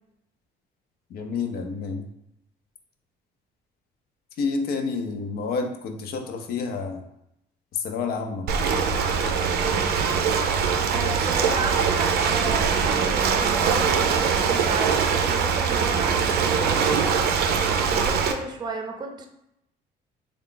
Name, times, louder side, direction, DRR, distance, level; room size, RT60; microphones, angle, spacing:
voice 1, 1.1-2.1 4.4-7.0 7.7-8.5, left 4 dB, 65° left, 5 dB, 0.6 m, -29 dB
Ocean, 8.5-18.3, right 6 dB, 70° right, 0.5 m, -22 dB
voice 2, 10.9-17.5 17.9-19.3, right 3 dB, 25° right, 4 dB, 0.6 m, -33 dB
3.6 x 2.3 x 3.8 m, 0.81 s
cardioid pair, 110°, 17 cm